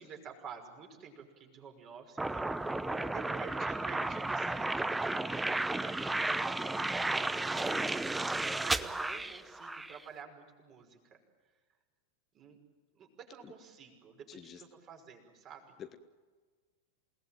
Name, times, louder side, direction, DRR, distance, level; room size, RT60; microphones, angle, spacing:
voice 1, 0.0-2.8 3.1-6.6 7.5-11.2 12.3-12.6 13.0-15.6, right 6 dB, 30° right, 3 dB, 5.7 m, -50 dB
sound 1, 2.2-10.0, right 2 dB, 5° right, 0.9 m, -33 dB
voice 2, 2.7-3.1 6.8-7.3 13.4-13.5 14.3-14.6 15.8-16.0, left 9 dB, 25° left, 9 dB, 1.2 m, -49 dB
28.5 x 19.0 x 9.2 m, 1.4 s
figure-of-eight pair, 90°, 0 cm